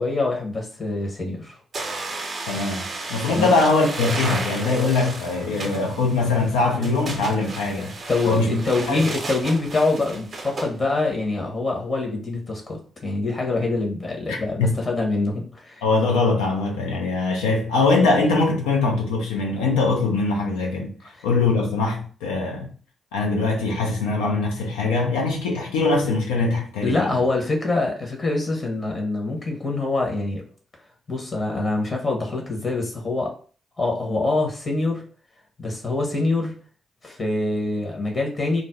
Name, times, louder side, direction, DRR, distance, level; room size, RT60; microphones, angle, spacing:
voice 1, 0.0-1.6 3.3-3.6 8.1-15.8 21.1-21.3 26.8-30.4 31.1-33.3 33.8-35.0 35.6-36.5 37.0-38.6, left 2 dB, 40° left, 1.0 m, -25 dB
sound 1, 1.7-10.7, right 3 dB, 55° right, 0.6 m, -33 dB
voice 2, 2.5-8.0 8.3-8.6 8.9-9.0 14.3-14.7 15.8-20.9 21.2-22.7 23.1-27.1, left 3 dB, 85° left, 0.6 m, -22 dB
2.5 x 2.0 x 3.5 m
hypercardioid pair, 40°, 0 cm